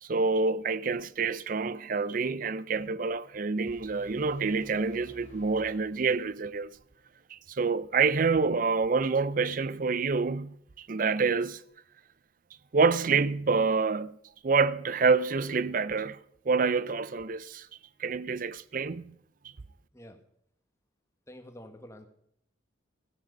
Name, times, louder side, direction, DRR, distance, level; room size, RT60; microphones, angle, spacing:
voice 1, 0.0-6.7 7.3-11.6 12.7-14.2 14.4-16.2 16.5-17.7 18.0-19.1, right 4 dB, 45° right, 0.5 m, -27 dB
sound 1, 3.7-6.6, left 1 dB, 35° left, 3.4 m, -52 dB
voice 2, 19.9-20.2 21.3-22.1, left 1 dB, 15° left, 1.3 m, -48 dB
15.0 x 10.0 x 5.3 m
head